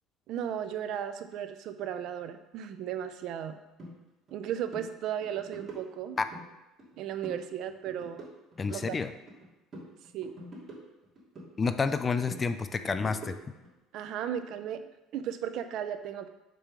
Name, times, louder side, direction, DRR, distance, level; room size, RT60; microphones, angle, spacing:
voice 1, 0.3-3.6 4.3-6.2 7.0-8.3 8.7-9.0 10.1-10.3 13.9-16.3, right 9 dB, 60° right, 9 dB, 0.5 m, -35 dB
sound 1, 3.8-3.9 4.3-4.4 4.7-4.9 5.2-6.4 6.8-7.4 7.7-9.4 9.7-11.5 11.8-13.7, right 1 dB, 30° right, 2.4 m, -46 dB
voice 2, 8.6-9.1 11.6-13.5, left 4 dB, 25° left, 11 dB, 0.4 m, -29 dB
5.3 x 4.3 x 6.1 m, 0.99 s
cardioid pair, 125°, 0 cm